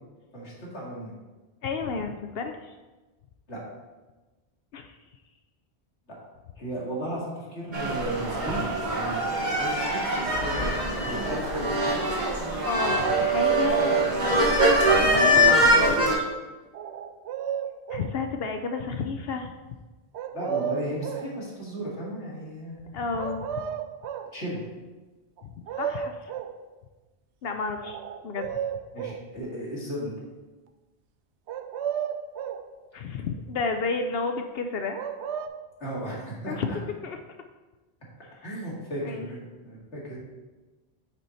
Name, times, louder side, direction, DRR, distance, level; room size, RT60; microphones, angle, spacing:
voice 1, 0.3-1.1 3.5-3.6 6.6-10.7 11.0-12.0 20.3-22.9 24.3-24.6 28.9-30.1 35.8-36.8 38.4-40.2, right 1 dB, 90° left, -5 dB, 2.4 m, -35 dB
voice 2, 1.6-2.7 4.7-5.0 12.6-14.8 15.0-16.3 17.9-19.5 22.9-23.6 25.4-25.5 25.8-26.3 27.4-28.0 28.2-28.5 32.9-35.0 36.5-36.7 37.0-37.2 39.0-39.3, left 4 dB, 65° left, 6 dB, 0.7 m, -31 dB
sound 1, 7.7-16.1, right 1 dB, 45° right, 1.8 m, -23 dB
sound 2, 16.7-18.2 20.1-21.3 23.1-24.3 25.4-25.5 25.7-26.6 27.8-29.3 31.5-32.7 34.9-35.5, right 9 dB, 90° right, 0.9 m, -33 dB
8.8 x 4.5 x 4.0 m, 1.2 s
omnidirectional pair, 1.1 m